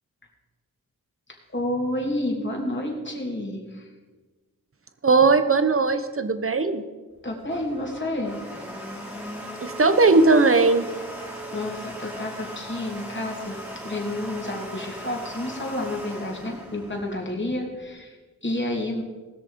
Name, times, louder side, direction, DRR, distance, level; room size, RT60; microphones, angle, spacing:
voice 1, 1.3-3.9 7.2-8.4 11.5-19.0, left 1 dB, 30° left, 0 dB, 3.1 m, -30 dB
voice 2, 5.0-6.8 9.6-10.9, right 3 dB, 40° right, 10 dB, 1.0 m, -18 dB
Domestic sounds home sounds, 7.1-17.8, equal, 5° right, 2.8 m, -38 dB
19.5 x 6.6 x 5.3 m, 1.3 s
wide cardioid pair, 75°, 35 cm